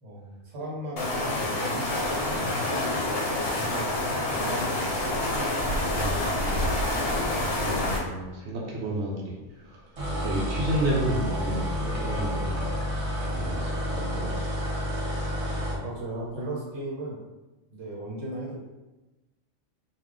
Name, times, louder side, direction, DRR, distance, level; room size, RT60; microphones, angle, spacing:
voice 1, 0.0-2.9 3.5-5.3 7.0-8.2 15.8-17.2 17.7-18.6, right 1 dB, 90° right, -3 dB, 1.2 m, -37 dB
sound 1, 1.0-8.0, left 1 dB, 60° left, 0.7 m, -27 dB
voice 2, 5.9-6.6 7.5-12.7 13.3-14.5, right 1 dB, 70° right, -3 dB, 0.9 m, -31 dB
sound 2, 10.0-15.8, equal, 40° right, 0.5 m, -30 dB
2.3 x 2.3 x 3.6 m, 1.1 s
omnidirectional pair, 1.3 m